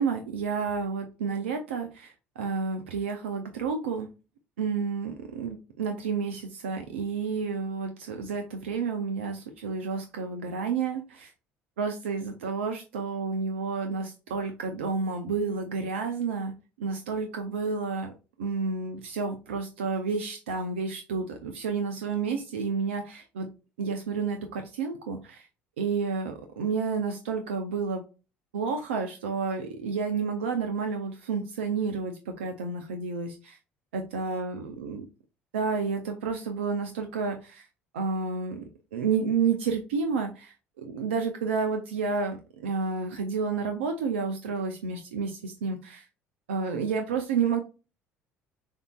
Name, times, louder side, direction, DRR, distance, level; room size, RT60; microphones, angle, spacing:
voice 1, 0.0-4.1 4.6-11.3 11.8-16.5 16.8-18.1 18.4-23.5 23.8-25.5 25.8-28.0 28.5-33.6 33.9-35.0 35.5-37.7 37.9-38.6 38.9-46.0 46.5-47.6, right 5 dB, 90° right, 5 dB, 0.6 m, -30 dB
6.6 x 2.8 x 2.4 m, 0.30 s
hypercardioid pair, 65°, 6 cm